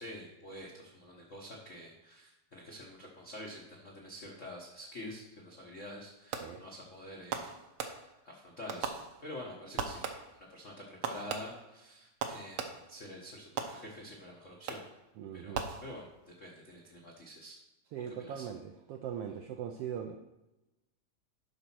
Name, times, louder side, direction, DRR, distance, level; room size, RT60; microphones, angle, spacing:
voice 1, 0.0-7.5 7.9-10.0 10.3-14.8 15.3-17.6 18.1-18.5, left 1 dB, 70° left, -2 dB, 0.7 m, -47 dB
Fireworks, 6.3-6.8 7.3-8.3 8.7-9.5 9.8-10.5 11.0-13.0 13.6-14.2 14.7-15.1 15.5-16.3, right 6 dB, 70° right, 1.4 m, -39 dB
voice 2, 15.2-15.7 17.9-20.2, right 8 dB, 85° right, 5 dB, 1.3 m, -40 dB
11.5 x 4.1 x 6.0 m, 0.98 s
omnidirectional pair, 3.3 m